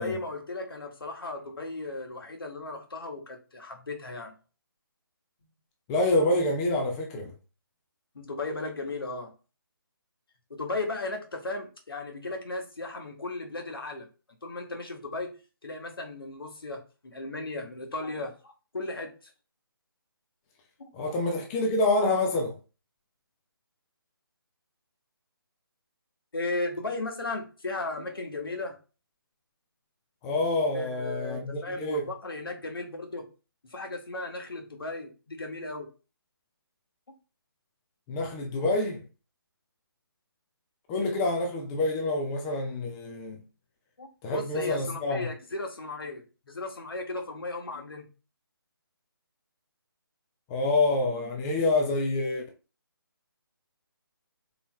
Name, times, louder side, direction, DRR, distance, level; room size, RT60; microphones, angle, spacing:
voice 1, 0.0-4.3 5.4-5.5 8.1-9.3 10.5-14.1 14.4-15.4 15.6-19.3 20.8-21.1 26.3-28.8 30.7-33.3 33.7-35.9 44.0-48.0, left 2 dB, 70° left, 1.6 m, -36 dB
voice 2, 5.9-7.3 20.9-22.6 30.2-32.1 38.1-39.0 40.9-43.4 44.2-45.3 50.5-52.4, left 2 dB, 15° left, 0.6 m, -27 dB
4.2 x 3.8 x 3.1 m
figure-of-eight pair, 150°, 13 cm